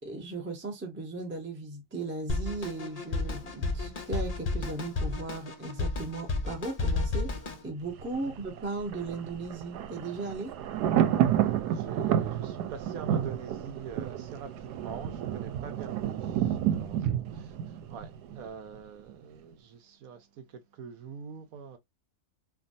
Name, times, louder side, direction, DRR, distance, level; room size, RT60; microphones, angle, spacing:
voice 1, 0.0-10.5 16.7-17.0, right 3 dB, 15° right, 0.5 m, -37 dB
Drum kit, 2.3-7.6, left 3 dB, 45° left, 0.5 m, -32 dB
Thunder, 7.8-18.8 19.1-19.2, right 10 dB, 90° right, 1.1 m, -30 dB
voice 2, 11.7-21.8, right 6 dB, 70° right, 1.0 m, -45 dB
3.4 x 2.3 x 2.5 m
omnidirectional pair, 1.7 m